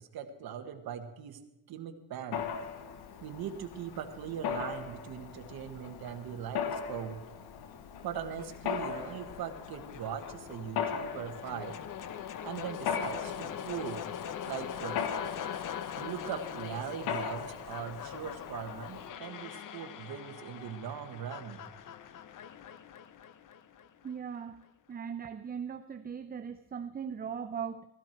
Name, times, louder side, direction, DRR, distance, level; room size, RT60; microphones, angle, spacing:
voice 1, 0.0-1.4 1.7-2.5 3.2-7.2 8.0-11.8 12.4-14.1 14.5-15.0 16.0-21.6, right 8 dB, 60° right, 6 dB, 1.4 m, -40 dB
Mechanisms, 2.3-19.1, left 7 dB, 70° left, 1.3 m, -39 dB
sound 1, 8.4-24.4, left 9 dB, 50° left, 0.8 m, -43 dB
voice 2, 24.0-24.6 24.9-27.9, right 7 dB, 25° right, 8 dB, 0.6 m, -39 dB
16.0 x 13.5 x 4.5 m, 0.98 s
cardioid pair, 110°, 40 cm